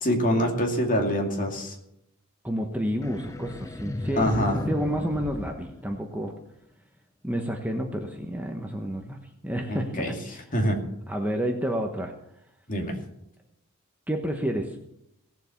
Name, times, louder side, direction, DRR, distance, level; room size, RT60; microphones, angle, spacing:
voice 1, 0.0-1.7 4.2-4.6 9.7-10.1 10.5-10.8 12.7-12.9, equal, 35° left, 1 dB, 2.4 m, -25 dB
voice 2, 2.4-6.3 7.2-10.2 11.1-12.1 14.1-14.8, equal, 5° right, 2 dB, 1.1 m, -30 dB
sound 1, 3.0-6.5, left 1 dB, 15° left, 0.4 m, -35 dB
17.5 x 7.6 x 7.2 m, 0.81 s
head